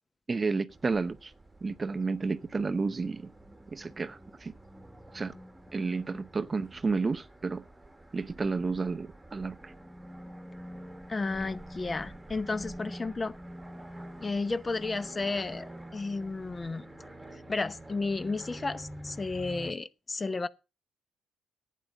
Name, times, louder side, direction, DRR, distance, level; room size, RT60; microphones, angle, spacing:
voice 1, 0.3-1.3 1.6-3.3 3.7-4.5 5.1-5.4 5.7-7.6 8.1-9.7, right 4 dB, 30° right, 0.6 m, -31 dB
sound 1, 0.7-19.7, right 1 dB, 10° right, 1.6 m, -47 dB
voice 2, 11.1-13.3 14.2-16.9 17.5-20.5, left 3 dB, 25° left, 0.8 m, -33 dB
11.5 x 9.3 x 5.2 m
cardioid pair, 90°, 0 cm